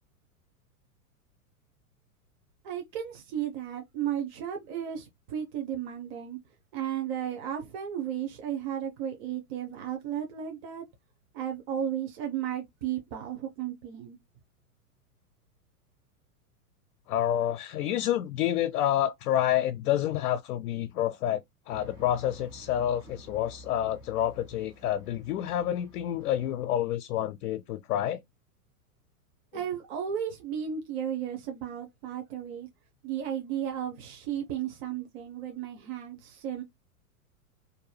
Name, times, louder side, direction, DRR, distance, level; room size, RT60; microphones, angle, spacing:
voice 1, 2.6-6.4 6.7-10.8 11.3-14.2 29.5-32.7 33.0-36.6, right 9 dB, 45° right, 0.7 m, -34 dB
voice 2, 17.1-21.4 21.7-28.2, left 11 dB, 75° left, 0.5 m, -28 dB
sound 1, 21.7-26.8, left 1 dB, 10° right, 0.3 m, -51 dB
2.6 x 2.2 x 3.1 m
hypercardioid pair, 115°, 45 cm